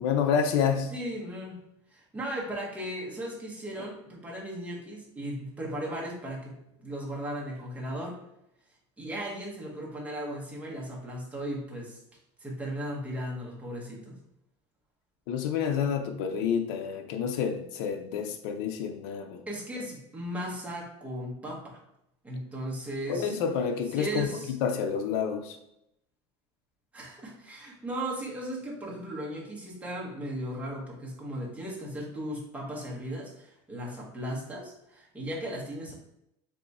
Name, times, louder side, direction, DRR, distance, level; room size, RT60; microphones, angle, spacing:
voice 1, 0.0-0.9 15.3-19.4 23.1-25.6, left 7 dB, 75° left, 5 dB, 0.5 m, -29 dB
voice 2, 0.9-1.6 1.9-8.2 9.0-12.0 12.4-14.2 19.5-21.8 22.2-23.4 23.9-24.5 26.9-35.9, right 1 dB, 10° right, -3 dB, 1.1 m, -36 dB
3.5 x 3.0 x 4.1 m, 0.82 s
cardioid pair, 150°, 14 cm